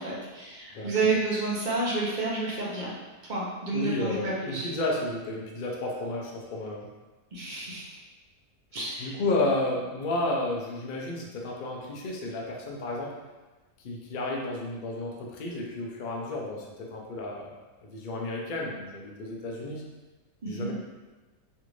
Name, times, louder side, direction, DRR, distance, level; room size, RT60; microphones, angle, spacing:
voice 1, 0.0-2.9 3.2-4.6 7.3-8.0 8.7-9.1 20.4-20.7, right 3 dB, 50° right, -5 dB, 0.5 m, -30 dB
voice 2, 3.7-6.9 9.0-13.1 13.8-17.5 17.8-19.8 20.5-20.7, left 2 dB, 80° left, -1 dB, 0.4 m, -32 dB
3.3 x 2.5 x 3.0 m, 1.2 s
omnidirectional pair, 1.6 m